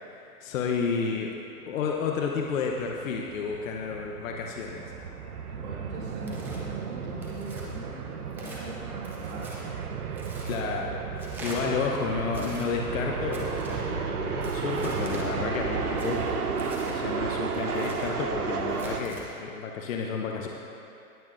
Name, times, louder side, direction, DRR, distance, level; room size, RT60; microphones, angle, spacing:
voice 1, 0.1-1.3 1.7-4.8 10.4-16.6 16.9-20.5, left 5 dB, 60° left, 0 dB, 1.0 m, -31 dB
sound 1, 1.9-19.0, right 5 dB, 85° right, 1.0 m, -33 dB
voice 2, 5.5-9.7, right 2 dB, 60° right, -8 dB, 2.1 m, -41 dB
Tearing, 6.2-6.6 7.2-7.7 8.3-8.6 9.0-9.6 10.2-10.6 11.2-11.6 12.3-12.7 13.3-13.8 14.4-15.3 16.0-17.0 17.5-18.1 18.7-19.2, right 2 dB, 5° right, 0.4 m, -43 dB
18.0 x 8.1 x 2.6 m, 2.7 s
hypercardioid pair, 135°, 44 cm